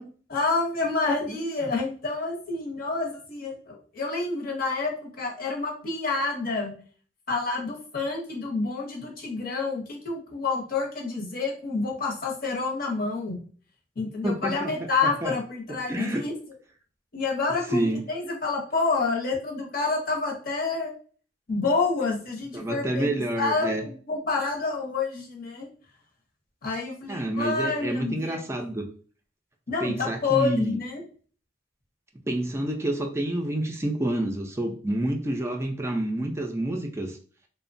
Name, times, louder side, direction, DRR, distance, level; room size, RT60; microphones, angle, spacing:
voice 1, 0.3-6.7 7.3-13.4 14.0-16.3 17.1-20.9 21.5-25.7 26.6-28.4 29.7-31.0, left 3 dB, 55° left, 0 dB, 0.8 m, -28 dB
voice 2, 1.3-1.7 14.2-14.7 15.0-15.3 15.9-16.2 17.7-18.0 22.5-23.8 27.1-28.9 29.8-30.8 32.3-37.2, right 1 dB, 15° right, 3 dB, 0.4 m, -28 dB
2.9 x 2.1 x 2.5 m, 0.42 s
head